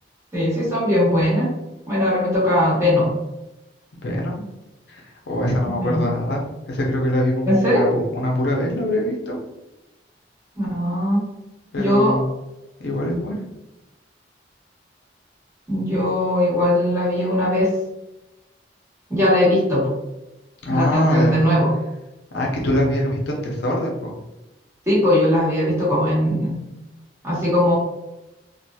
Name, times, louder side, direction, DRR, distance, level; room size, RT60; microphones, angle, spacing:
voice 1, 0.3-1.5 1.9-3.1 5.7-6.1 7.5-7.9 10.6-11.3 11.8-12.2 15.7-17.7 19.1-19.9 20.7-21.7 24.9-26.6 27.2-27.8, left 1 dB, 15° right, -8 dB, 1.0 m, -19 dB
voice 2, 4.0-4.4 4.9-9.4 11.7-12.3 12.8-13.4 20.6-21.4 22.3-24.1, left 1 dB, 65° left, -2 dB, 0.6 m, -23 dB
2.7 x 2.4 x 2.2 m, 0.97 s
head